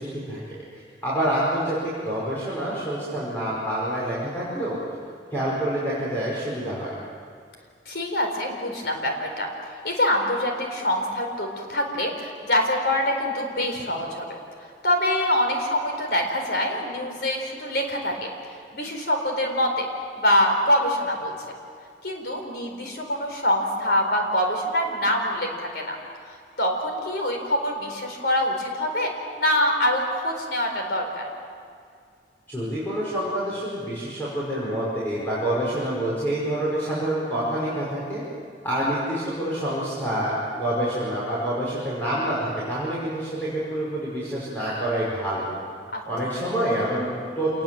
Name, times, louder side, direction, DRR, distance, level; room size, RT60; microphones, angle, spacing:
voice 1, 0.0-4.8 5.3-7.0 32.5-38.2 38.6-45.5 46.1-47.6, right 1 dB, 10° left, -9 dB, 5.4 m, -27 dB
voice 2, 7.9-9.5 9.8-14.4 14.8-18.3 18.7-19.9 20.2-21.3 22.0-26.0 26.6-29.1 29.4-31.3 45.9-46.0, left 1 dB, 60° left, 3 dB, 4.3 m, -25 dB
27.0 x 20.5 x 7.8 m, 2.2 s
head